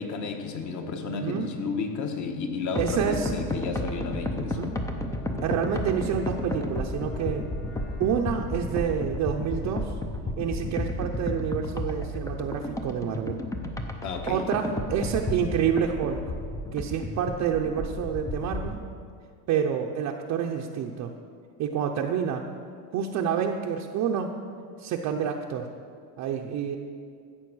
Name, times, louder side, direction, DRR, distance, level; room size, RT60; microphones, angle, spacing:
voice 1, 0.0-4.6 14.0-14.4, left 4 dB, 40° left, 5 dB, 1.4 m, -32 dB
voice 2, 1.1-1.5 2.8-3.3 4.5-4.7 5.4-7.4 8.0-9.9 10.4-13.4 14.3-16.2 16.7-18.8 19.5-21.1 21.6-22.4 22.9-24.3 24.8-25.7 26.2-26.8, right 8 dB, 40° right, 1 dB, 0.7 m, -28 dB
sound 1, 2.8-18.8, left 1 dB, 5° left, 0.5 m, -32 dB
Bowed string instrument, 4.4-8.8, left 4 dB, 75° left, 2.7 m, -45 dB
14.5 x 7.8 x 6.2 m, 2.2 s
cardioid pair, 155°, 45 cm